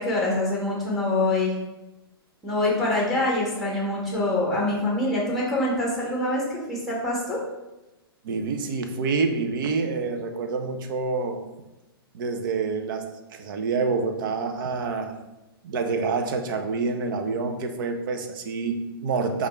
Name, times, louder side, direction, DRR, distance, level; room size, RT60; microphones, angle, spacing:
voice 1, 0.0-1.6 2.4-7.4, left 2 dB, ahead, -4 dB, 1.3 m, -25 dB
voice 2, 8.2-11.4 12.1-13.0 13.3-15.1 15.6-19.5, right 4 dB, 55° right, 6 dB, 0.6 m, -27 dB
4.9 x 2.5 x 4.2 m, 1.0 s
hypercardioid pair, 125°, 13 cm